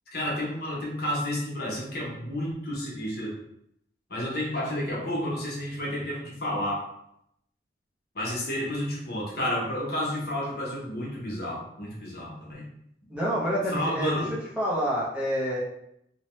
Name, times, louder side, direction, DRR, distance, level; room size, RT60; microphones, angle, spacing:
voice 1, 0.1-3.3 4.1-6.8 8.1-12.6 13.7-14.3, left 1 dB, 60° left, -4 dB, 0.9 m, -31 dB
voice 2, 13.1-14.1 14.6-15.6, equal, 5° right, -7 dB, 0.6 m, -27 dB
2.8 x 2.1 x 3.0 m, 0.76 s
head